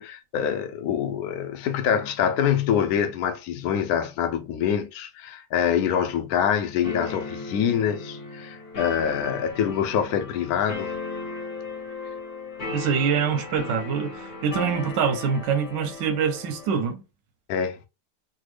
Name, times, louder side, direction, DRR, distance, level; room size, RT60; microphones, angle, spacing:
voice 1, 0.0-10.9 17.5-17.9, left 8 dB, 70° left, 1.0 m, -25 dB
sound 1, 6.8-16.9, left 3 dB, 50° left, 1.3 m, -36 dB
voice 2, 12.7-17.0, right 7 dB, 90° right, 1.3 m, -25 dB
3.4 x 2.1 x 3.2 m
omnidirectional pair, 1.8 m